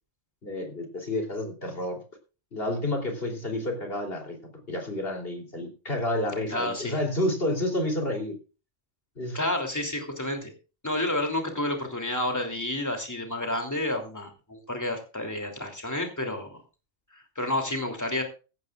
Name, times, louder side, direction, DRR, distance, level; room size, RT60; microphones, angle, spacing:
voice 1, 0.4-2.0 2.5-4.4 4.7-8.3 9.2-9.4, left 1 dB, 55° left, 3 dB, 3.7 m, -30 dB
voice 2, 6.5-7.0 9.3-10.5 10.8-16.6 17.1-18.2, left 1 dB, 15° left, 3 dB, 3.0 m, -30 dB
16.5 x 14.5 x 2.4 m, 0.34 s
omnidirectional pair, 1.2 m